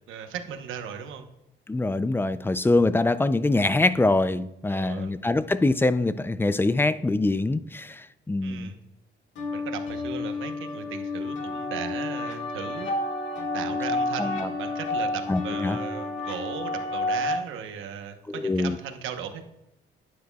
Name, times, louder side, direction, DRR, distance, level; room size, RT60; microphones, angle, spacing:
voice 1, 0.1-1.3 4.7-5.1 8.4-8.8 9.5-12.9 13.5-19.5, right 8 dB, 85° right, 6 dB, 1.0 m, -37 dB
voice 2, 1.7-8.7 14.2-14.5 15.3-15.8 18.3-18.8, left 2 dB, 10° left, 14 dB, 0.4 m, -24 dB
sound 1, 9.3-17.3, left 2 dB, 70° left, 1.9 m, -30 dB
12.0 x 9.5 x 2.3 m, 0.87 s
cardioid pair, 90°, 20 cm